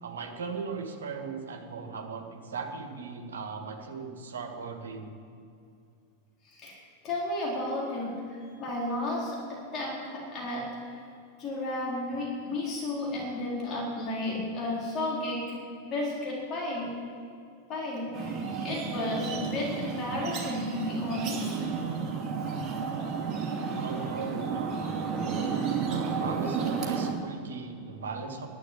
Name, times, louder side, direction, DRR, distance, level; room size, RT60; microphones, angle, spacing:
voice 1, 0.0-5.1 23.8-25.0 25.9-28.5, right 5 dB, 65° right, 4 dB, 1.7 m, -38 dB
voice 2, 6.4-6.8 7.0-11.0 11.4-15.6 15.8-16.9 17.7-21.6, left 2 dB, 30° left, -4 dB, 4.1 m, -33 dB
sound 1, 18.1-27.1, right 5 dB, 30° right, 2.6 m, -32 dB
11.5 x 9.3 x 9.0 m, 2.5 s
figure-of-eight pair, 90°, 0 cm